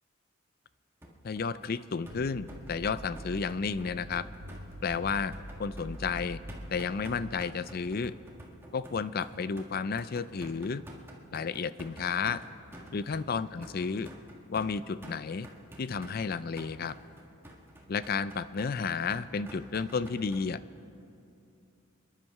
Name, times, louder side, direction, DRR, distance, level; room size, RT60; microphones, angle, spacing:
sound 1, 1.0-20.4, right 1 dB, 10° right, 1.5 m, -49 dB
voice 1, 1.2-4.3 4.8-5.3 5.6-6.4 6.7-8.1 8.7-10.8 11.3-12.4 12.9-14.1 14.5-15.5 15.8-16.9 17.9-20.6, left 5 dB, 45° left, 15 dB, 0.4 m, -32 dB
sound 2, 2.1-7.4, equal, 55° right, 1.3 m, -45 dB
27.5 x 11.0 x 4.8 m, 2.7 s
head